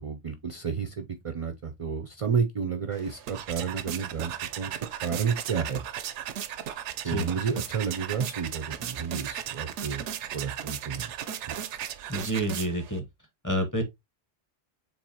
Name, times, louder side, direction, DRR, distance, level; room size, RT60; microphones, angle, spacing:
voice 1, 0.0-4.7 5.0-5.8 7.0-10.0 10.3-11.1, right 6 dB, 50° right, 0.4 m, -31 dB
sound 1, 2.9-13.0, right 9 dB, 90° right, 0.9 m, -36 dB
voice 2, 12.1-13.0 13.4-13.8, right 1 dB, 20° left, 1.0 m, -28 dB
7.2 x 2.7 x 2.8 m
omnidirectional pair, 1.2 m